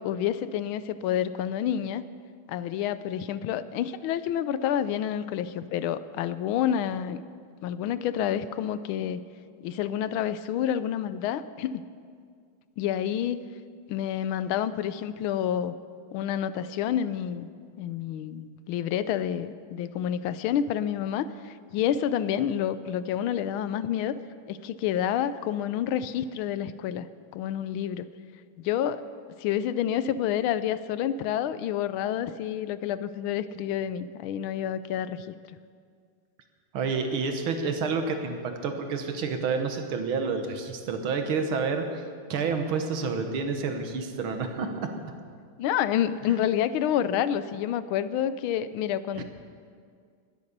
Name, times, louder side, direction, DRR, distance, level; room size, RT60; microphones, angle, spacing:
voice 1, 0.0-2.0 2.5-7.2 7.6-9.2 9.6-11.8 12.8-13.4 13.9-15.7 16.1-17.5 17.8-24.2 24.5-27.1 27.3-28.1 28.6-29.0 29.4-35.3 45.6-49.2, left 10 dB, 80° left, 14 dB, 1.4 m, -28 dB
voice 2, 36.7-42.0 42.3-44.7 49.2-49.3, right 4 dB, 75° right, 5 dB, 2.0 m, -29 dB
20.5 x 8.4 x 6.7 m, 2.1 s
omnidirectional pair, 2.3 m